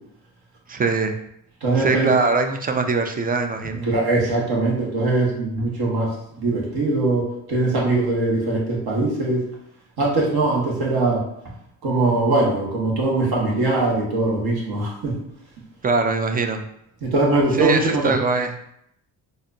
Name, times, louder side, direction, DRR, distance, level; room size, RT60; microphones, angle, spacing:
voice 1, 0.7-1.2 1.8-3.9 15.8-16.6 17.5-18.5, right 4 dB, 20° right, 6 dB, 0.3 m, -22 dB
voice 2, 1.6-2.1 3.8-9.5 10.0-11.3 11.8-15.2 17.0-18.2, right 2 dB, 55° right, -3 dB, 1.4 m, -21 dB
4.1 x 2.5 x 2.6 m, 0.74 s
supercardioid pair, 75°, 44 cm